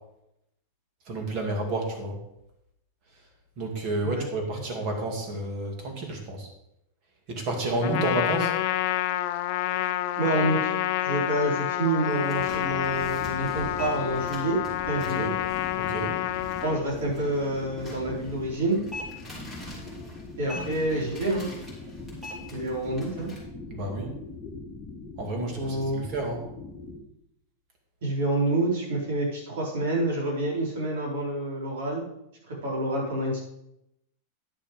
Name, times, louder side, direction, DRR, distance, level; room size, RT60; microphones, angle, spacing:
voice 1, 1.1-2.2 3.6-6.5 7.3-8.5 15.1-15.3 15.8-16.1 23.7-24.1 25.2-26.4, right 2 dB, 35° right, 2 dB, 2.3 m, -30 dB
Trumpet, 7.8-16.8, left 14 dB, 50° left, 0.5 m, -28 dB
voice 2, 10.2-10.7 11.0-15.3 16.6-18.8 20.4-21.5 22.5-23.3 25.6-26.1 28.0-32.0 32.5-33.4, right 1 dB, 70° right, -3 dB, 4.6 m, -28 dB
sound 1, 12.0-23.4, left 1 dB, 10° right, 2.8 m, -45 dB
sound 2, 12.3-27.0, left 3 dB, 15° left, 1.9 m, -42 dB
10.0 x 6.5 x 5.2 m, 0.82 s
supercardioid pair, 165°, 0 cm